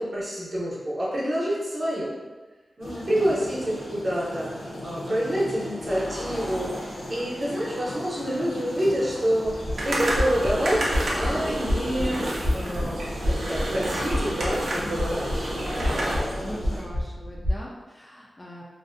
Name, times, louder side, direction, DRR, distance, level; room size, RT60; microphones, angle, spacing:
voice 1, 0.0-2.1 2.8-6.7 7.1-12.2 12.5-13.0 13.2-15.5, equal, 45° right, -7 dB, 0.7 m, -27 dB
sound 1, 2.8-16.8, left 1 dB, 70° left, 0.6 m, -36 dB
sound 2, 9.4-17.6, equal, 10° right, 0.7 m, -30 dB
sound 3, 9.8-16.2, right 1 dB, 75° right, 0.5 m, -30 dB
voice 2, 16.3-18.6, equal, 20° left, -3 dB, 0.3 m, -41 dB
2.5 x 2.0 x 2.5 m, 1.2 s
wide cardioid pair, 120°, 0 cm